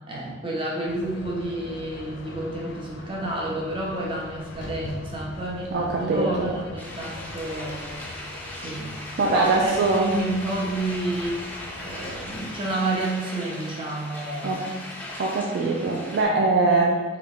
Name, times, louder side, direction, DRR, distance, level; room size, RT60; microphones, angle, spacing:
voice 1, 0.1-8.0 8.5-8.9 9.2-11.4 11.8-14.6, right 2 dB, 30° right, -3 dB, 0.6 m, -30 dB
sound 1, 0.9-12.4, left 2 dB, 85° left, 0.4 m, -42 dB
voice 2, 5.7-6.5 9.2-10.2 14.4-14.6 15.2-17.0, right 3 dB, 60° right, 0 dB, 0.3 m, -22 dB
sound 2, 6.8-16.2, left 1 dB, 10° left, 0.5 m, -38 dB
3.4 x 2.3 x 3.5 m, 1.3 s
head